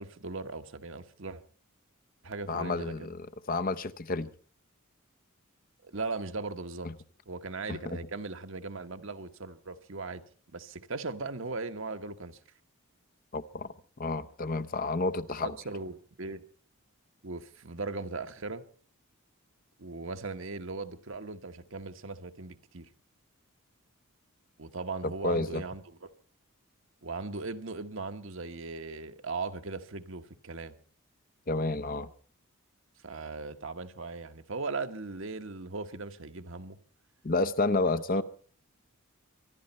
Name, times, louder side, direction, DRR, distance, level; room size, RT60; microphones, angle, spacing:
voice 1, 0.0-1.4 2.2-3.1 5.8-6.9 7.3-10.2 10.5-12.4 15.4-16.4 17.2-18.6 19.8-22.9 24.6-26.1 27.0-30.8 33.0-36.8, right 3 dB, 60° right, 1.1 m, -38 dB
voice 2, 2.5-4.3 7.7-7.8 13.3-13.7 14.0-15.5 25.2-25.6 31.5-32.1 37.2-38.2, left 3 dB, 40° left, 0.7 m, -30 dB
25.0 x 12.0 x 4.3 m
head